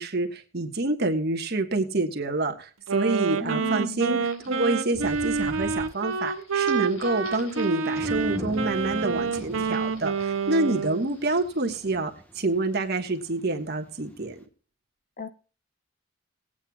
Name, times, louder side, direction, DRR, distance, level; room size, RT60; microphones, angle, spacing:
voice 1, 0.0-14.3, right 2 dB, 50° right, 4 dB, 1.4 m, -27 dB
Wind instrument woodwind instrument, 2.9-11.1, right 5 dB, 75° right, 0.8 m, -28 dB
voice 2, 3.4-4.2 15.2-15.3, left 2 dB, 40° left, 10 dB, 0.8 m, -36 dB
sound 1, 4.2-11.8, left 2 dB, 80° left, 3.7 m, -47 dB
sound 2, 7.9-13.6 14.1-14.4, left 1 dB, 10° left, 1.2 m, -41 dB
19.5 x 8.7 x 2.3 m, 0.36 s
head